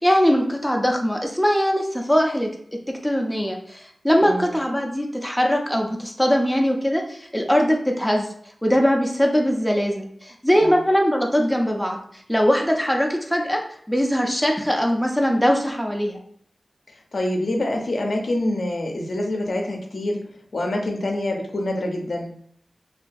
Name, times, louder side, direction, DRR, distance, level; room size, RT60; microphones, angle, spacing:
voice 1, 0.0-2.5 2.9-8.3 8.6-12.0 12.3-13.6 13.9-16.2, equal, ahead, 1 dB, 0.3 m, -21 dB
voice 2, 4.2-4.6 10.5-10.8 17.1-20.2 20.5-22.3, left 1 dB, 65° left, 1 dB, 0.4 m, -26 dB
2.3 x 2.2 x 2.5 m, 0.63 s
wide cardioid pair, 100°, 0 cm